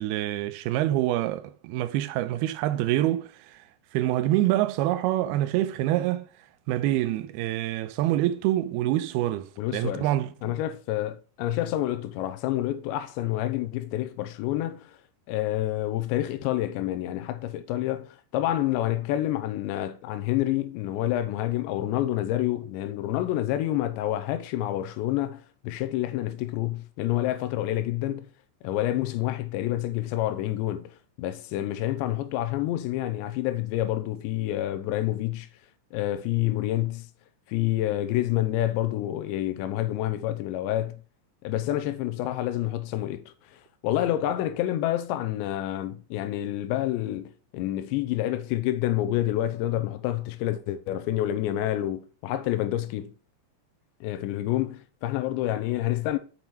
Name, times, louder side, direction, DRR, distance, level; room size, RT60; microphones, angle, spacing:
voice 1, 0.0-3.6 3.9-6.3 6.7-10.5, right 14 dB, 85° right, 2.3 m, -26 dB
voice 2, 9.6-10.1 10.4-15.0 15.3-28.3 28.6-35.5 35.9-37.1 37.5-41.0 41.4-53.1 54.0-56.2, left 14 dB, 90° left, 3.0 m, -28 dB
7.0 x 5.9 x 4.6 m
omnidirectional pair, 5.0 m